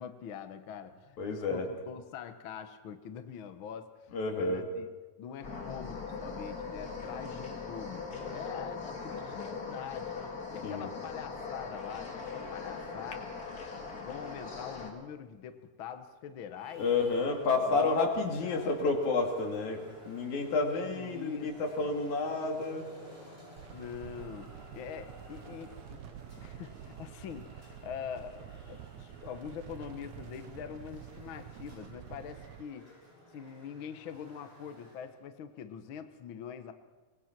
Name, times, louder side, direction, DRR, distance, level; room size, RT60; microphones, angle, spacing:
voice 1, 0.0-4.8 5.2-10.2 10.5-13.4 14.0-16.9 17.7-18.0 18.4-18.8 20.7-22.0 23.7-26.0 26.4-32.9 33.3-36.7, left 8 dB, 60° left, 8 dB, 1.5 m, -44 dB
voice 2, 1.2-1.7 4.1-4.7 10.6-10.9 16.8-22.9, left 3 dB, 75° left, 2 dB, 3.8 m, -30 dB
sound 1, 5.4-14.9, left 4 dB, 30° left, 2.4 m, -40 dB
Traffic noise roadway noise, 16.5-35.2, equal, 15° right, 7.4 m, -54 dB
sound 2, 23.6-32.6, right 10 dB, 75° right, 2.0 m, -48 dB
24.5 x 19.5 x 6.0 m, 1.2 s
omnidirectional pair, 3.4 m